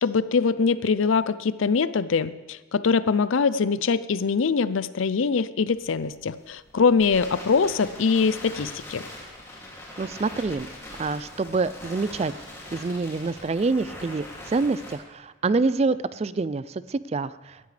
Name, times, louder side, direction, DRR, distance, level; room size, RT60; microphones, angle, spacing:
voice 1, 0.0-9.0, left 5 dB, 75° left, 16 dB, 0.5 m, -23 dB
Crackle, 5.7-14.9, left 1 dB, 15° left, 2.6 m, -42 dB
voice 2, 10.0-10.7 11.0-12.3 12.7-17.6, right 3 dB, 30° right, 16 dB, 0.3 m, -26 dB
17.5 x 13.0 x 3.4 m, 1.3 s
head